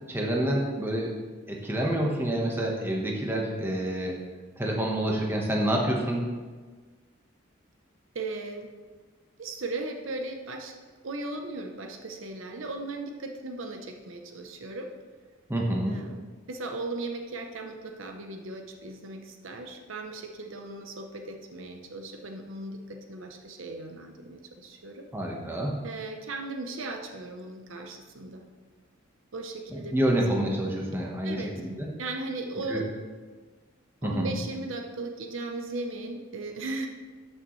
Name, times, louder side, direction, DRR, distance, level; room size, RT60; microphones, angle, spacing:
voice 1, 0.1-1.1 1.5-4.1 4.6-6.3 15.5-16.0 25.1-25.7 29.7-31.9 32.7-32.8 34.0-34.3, right 1 dB, 10° right, -2 dB, 1.2 m, -28 dB
voice 2, 8.1-8.7 9.4-10.8 11.0-14.9 15.8-16.2 16.5-25.1 25.8-28.4 29.3-30.0 31.2-31.5 32.0-32.9 34.0-36.9, right 2 dB, 70° right, 4 dB, 0.8 m, -37 dB
13.0 x 6.5 x 3.2 m, 1.4 s
head